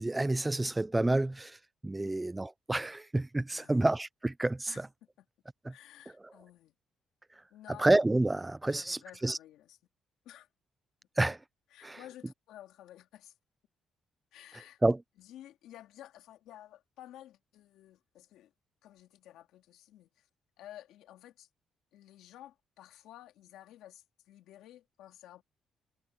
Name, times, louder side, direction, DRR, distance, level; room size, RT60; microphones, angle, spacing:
voice 1, 0.0-1.6 1.8-4.9 5.6-5.7 7.8-9.4 11.2-11.4 11.8-12.0 14.8-15.0, right 2 dB, 15° right, 0.5 m, -29 dB
voice 2, 3.5-3.9 4.7-4.8 5.2-5.3 5.7-6.7 7.5-7.8 8.7-9.8 10.2-10.5 11.7-13.3 14.3-14.8 15.2-18.5 18.8-20.3 20.6-21.5 21.9-25.4, left 13 dB, 90° left, 2.7 m, -53 dB
cardioid pair, 90°, 0 cm